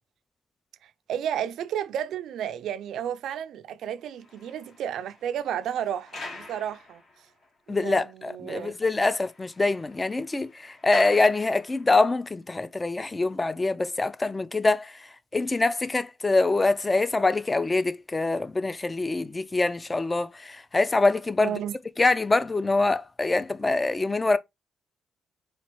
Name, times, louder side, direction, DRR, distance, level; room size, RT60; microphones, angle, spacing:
voice 1, 0.8-7.3 7.7-8.7 21.4-21.7, right 9 dB, 75° right, 0.4 m, -32 dB
sound 1, 4.0-7.5 8.0-8.1 8.5-8.6 8.8-12.1, left 2 dB, 55° left, 1.5 m, -44 dB
voice 2, 7.7-14.9 15.3-21.5 22.0-24.4, left 3 dB, 20° left, 0.4 m, -24 dB
4.3 x 2.4 x 3.0 m
cardioid pair, 90°, 0 cm